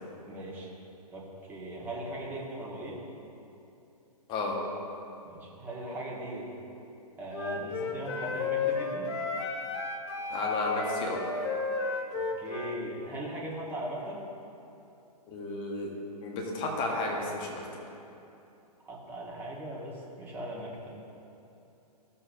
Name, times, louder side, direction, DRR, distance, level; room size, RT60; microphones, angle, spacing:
voice 1, 0.2-0.7 1.1-3.0 5.2-6.5 7.2-9.1 12.1-14.2 18.8-21.0, right 1 dB, 10° right, -5 dB, 1.5 m, -39 dB
Wind instrument woodwind instrument, 7.3-12.8, left 4 dB, 40° left, 0.9 m, -33 dB
voice 2, 10.3-11.2 15.3-15.9 16.2-17.6, left 2 dB, 25° left, -1 dB, 1.4 m, -32 dB
15.0 x 6.8 x 2.7 m, 2.8 s
figure-of-eight pair, 120°, 21 cm